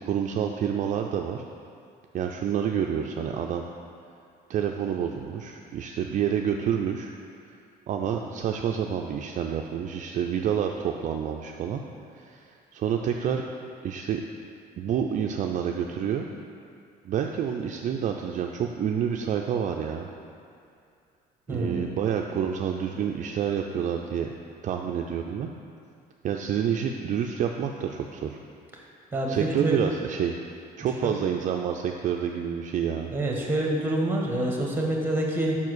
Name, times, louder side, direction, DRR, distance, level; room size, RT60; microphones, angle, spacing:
voice 1, 0.0-1.4 2.1-3.6 4.5-7.1 7.9-11.8 12.1-13.4 13.8-14.2 14.8-16.3 17.0-20.1 21.5-24.3 24.6-25.5 26.2-28.4 29.3-30.3 30.8-33.1, right 8 dB, 50° right, 2 dB, 0.4 m, -28 dB
voice 2, 21.5-21.9 29.1-29.8 31.0-31.2 33.1-35.6, right 1 dB, 10° right, -1 dB, 1.2 m, -27 dB
5.6 x 4.6 x 6.2 m, 2.4 s
cardioid pair, 110°, 17 cm